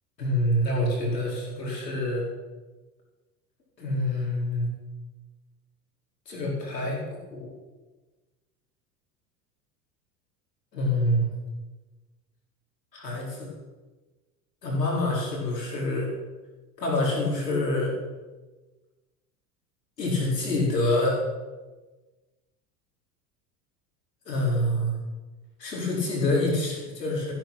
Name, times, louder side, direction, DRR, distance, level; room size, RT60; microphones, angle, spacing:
voice 1, 0.2-2.2 3.8-4.7 6.3-7.5 10.7-11.3 12.9-13.5 14.6-16.1 16.8-17.9 20.0-21.2 24.2-25.0 25.6-27.3, left 1 dB, 85° left, -3 dB, 4.8 m, -26 dB
14.5 x 12.0 x 6.2 m, 1.2 s
figure-of-eight pair, 75°, 48 cm